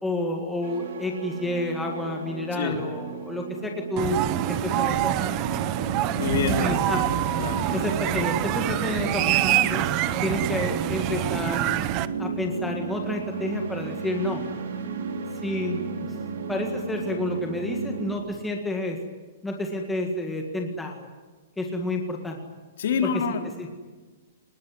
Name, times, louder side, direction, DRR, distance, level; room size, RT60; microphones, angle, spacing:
voice 1, 0.0-4.2 4.5-5.7 6.6-7.2 7.7-9.8 10.2-11.7 12.2-14.4 15.4-16.1 16.5-19.0 19.4-21.1 21.6-22.4 23.0-23.1 23.6-23.7, left 1 dB, 5° left, 1 dB, 1.9 m, -30 dB
sound 1, 0.6-18.2, right 4 dB, 70° right, 5.0 m, -34 dB
sound 2, 4.0-12.1, right 14 dB, 25° right, 0.7 m, -26 dB
voice 2, 6.1-6.8 7.4-7.8 22.8-23.5, left 6 dB, 55° left, 5 dB, 3.3 m, -27 dB
25.0 x 20.5 x 9.6 m, 1.3 s
hypercardioid pair, 180°, 0 cm